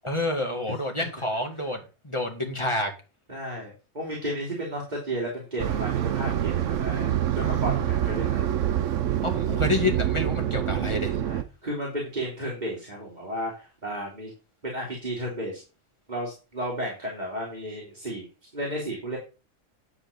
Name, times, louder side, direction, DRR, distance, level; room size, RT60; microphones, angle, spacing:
voice 1, 0.0-1.8 2.0-2.9 9.2-11.1, left 2 dB, 20° left, 2 dB, 2.1 m, -28 dB
voice 2, 3.3-8.4 11.2-14.3 14.6-15.6 16.1-18.3 18.5-19.2, right 1 dB, 35° right, -4 dB, 3.1 m, -33 dB
sound 1, 5.6-11.4, right 11 dB, 75° right, 1.1 m, -26 dB
10.5 x 4.3 x 7.0 m, 0.32 s
omnidirectional pair, 1.3 m